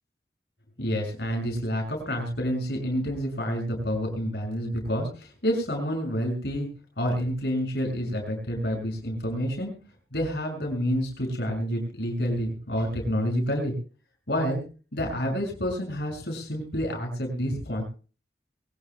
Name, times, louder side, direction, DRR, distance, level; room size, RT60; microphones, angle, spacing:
voice 1, 0.8-6.7 7.0-9.7 10.1-13.7 14.3-14.6 14.9-17.8, equal, 70° left, 2 dB, 6.5 m, -28 dB
23.0 x 18.0 x 2.2 m, 0.36 s
head